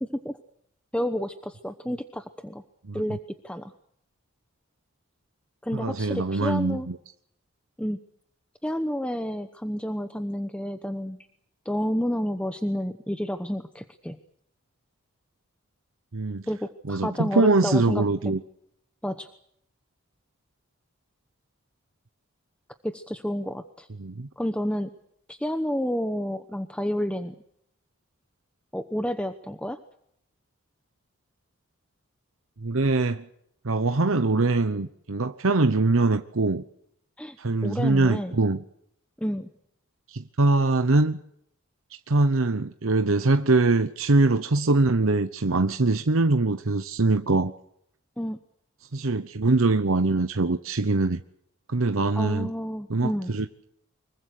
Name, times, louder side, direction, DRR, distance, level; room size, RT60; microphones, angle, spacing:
voice 1, 0.0-0.4 0.9-2.6 2.9-3.2 3.4-3.7 5.6-6.9 7.8-8.0 8.6-11.2 11.6-14.2 16.5-18.0 19.0-19.3 22.8-23.9 24.4-24.9 25.3-27.4 28.7-29.8 37.2-37.4 37.6-38.4 39.2-39.5 48.2-48.4 52.1-53.3, equal, 5° left, 1.0 m, -30 dB
voice 2, 5.7-7.0 16.1-16.5 16.9-18.4 24.0-24.3 32.6-33.2 33.6-36.6 37.4-38.6 40.1-41.2 42.1-47.5 48.9-51.2 51.7-52.5 52.9-53.7, right 3 dB, 80° right, 1.0 m, -23 dB
25.0 x 23.0 x 6.7 m
head